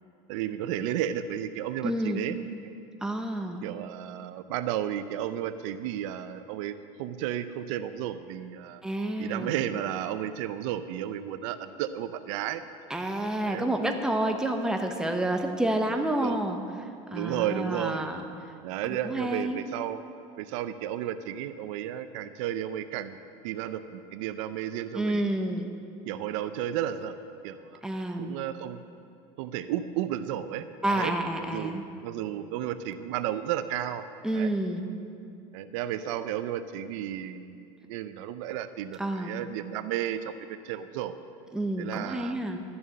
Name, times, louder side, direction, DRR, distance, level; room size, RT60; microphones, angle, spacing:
voice 1, 0.3-2.4 3.6-8.8 9.2-12.6 13.4-13.7 16.2-16.4 17.1-18.1 18.6-20.0 20.4-23.2 23.4-25.2 26.1-27.1 27.4-27.8 28.2-28.8 29.4-31.1 31.4-34.1 34.3-34.5 35.5-41.2 41.8-42.3, right 11 dB, 80° right, 11 dB, 0.6 m, -33 dB
voice 2, 1.8-2.2 3.0-3.6 8.8-9.6 12.9-18.2 18.9-19.6 24.9-25.7 27.8-28.4 30.8-31.8 34.2-34.9 39.0-39.3 41.5-42.6, right 1 dB, 5° right, 4 dB, 1.0 m, -29 dB
12.5 x 7.0 x 7.6 m, 2.4 s
supercardioid pair, 130°, 16 cm